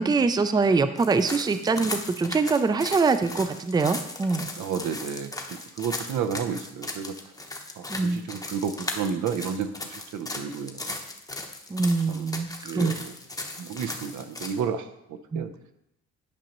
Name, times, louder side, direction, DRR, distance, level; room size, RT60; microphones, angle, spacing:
voice 1, 0.0-4.5 7.9-8.2 11.7-13.0 15.3-15.5, right 4 dB, 15° right, 10 dB, 0.4 m, -24 dB
sound 1, 1.0-14.6, left 2 dB, 10° left, 0.8 m, -37 dB
voice 2, 4.6-7.2 7.8-10.9 11.8-12.3 12.6-13.1 13.6-15.5, right 7 dB, 75° right, 8 dB, 0.7 m, -32 dB
10.0 x 5.1 x 3.0 m, 0.85 s
cardioid pair, 90°, 30 cm